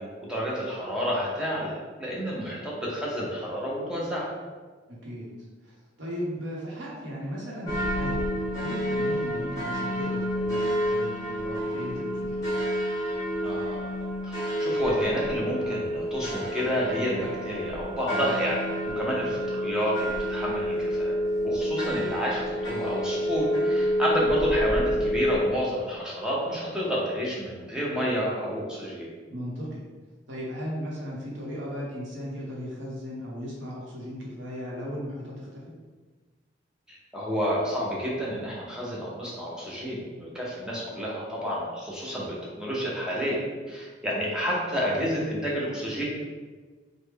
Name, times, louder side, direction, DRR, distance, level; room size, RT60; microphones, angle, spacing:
voice 1, 0.0-4.3 13.4-13.9 14.2-18.6 19.0-21.1 21.4-29.1 36.9-43.4 43.7-46.0, equal, 5° right, -6 dB, 0.7 m, -30 dB
voice 2, 4.9-8.3 8.6-12.5 18.8-19.1 29.3-29.8 30.3-35.7, equal, 70° right, -4 dB, 0.9 m, -36 dB
sound 1, 7.7-25.5, equal, 20° left, 1.1 m, -29 dB
3.1 x 2.1 x 3.5 m, 1.4 s
head